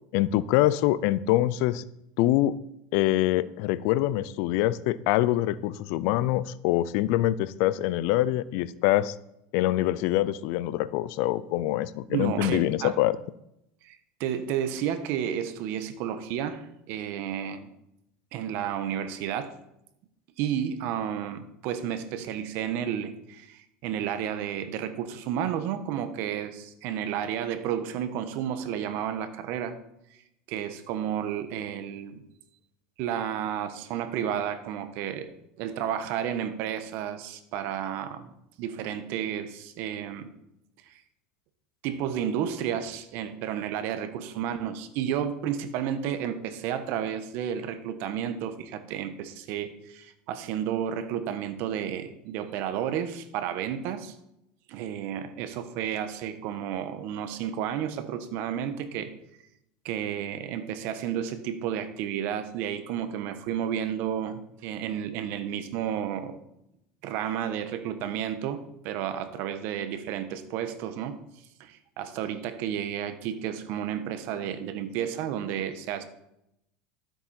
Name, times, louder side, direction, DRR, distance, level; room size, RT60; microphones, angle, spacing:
voice 1, 0.1-1.8 2.2-2.6 2.9-9.2 9.5-13.2, left 15 dB, 65° left, 17 dB, 0.5 m, -25 dB
voice 2, 12.1-12.9 13.8-17.7 18.3-19.5 20.4-29.7 30.5-32.2 33.0-35.3 35.6-40.3 40.9-41.0 41.8-54.1 54.7-59.1 59.8-66.4 67.0-71.2 71.6-76.0, right 9 dB, 60° right, 10 dB, 1.3 m, -32 dB
13.0 x 7.9 x 4.4 m, 0.81 s
supercardioid pair, 135°, 4 cm